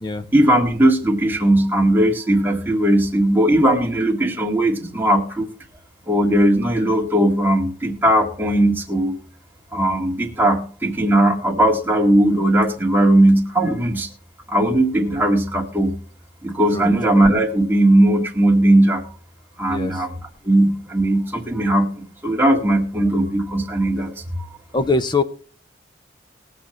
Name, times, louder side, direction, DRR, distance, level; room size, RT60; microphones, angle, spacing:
voice 1, 0.3-5.5 6.1-9.1 9.7-14.1 14.5-15.9 16.4-19.0 19.6-20.2 20.4-24.1, right 1 dB, 10° right, 0 dB, 2.0 m, -18 dB
voice 2, 24.7-25.2, left 3 dB, 25° left, 10 dB, 0.9 m, -21 dB
21.0 x 7.4 x 3.2 m, 0.43 s
head